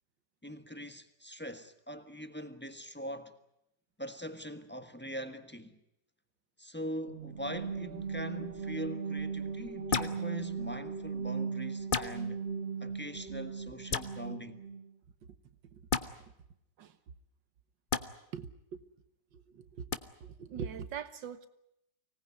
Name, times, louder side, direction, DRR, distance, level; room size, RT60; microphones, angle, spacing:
voice 1, 0.4-3.4 4.0-5.8 6.6-12.4 12.8-14.6, equal, 5° left, 1.1 m, -42 dB
sound 1, 7.1-14.9, right 5 dB, 35° right, 2.6 m, -38 dB
sound 2, 9.9-10.2 11.9-12.1 13.9-14.1 15.9-16.1 17.9-18.0 19.9-20.0, left 5 dB, 35° left, 0.9 m, -30 dB
voice 2, 18.3-18.8 19.3-19.9 20.2-21.5, right 7 dB, 80° right, 1.9 m, -42 dB
24.5 x 18.5 x 9.6 m
omnidirectional pair, 1.9 m